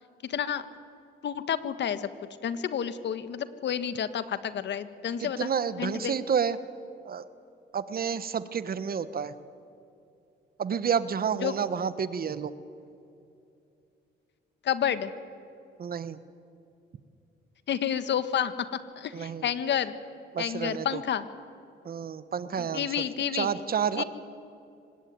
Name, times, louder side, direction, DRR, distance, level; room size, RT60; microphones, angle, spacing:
voice 1, 0.2-0.7 1.2-2.1 2.4-5.5 5.8-6.1 11.4-11.5 14.6-15.1 17.7-18.5 19.0-19.9 20.4-21.2 22.6-23.5 24.0-24.1, left 9 dB, 65° left, 12 dB, 1.6 m, -30 dB
voice 2, 5.2-6.6 7.0-7.2 7.7-9.3 10.6-12.5 15.8-16.2 19.1-19.5 20.3-21.0 21.8-24.0, right 7 dB, 50° right, 14 dB, 1.4 m, -30 dB
25.5 x 19.5 x 9.6 m, 2.6 s
cardioid pair, 90°, 20 cm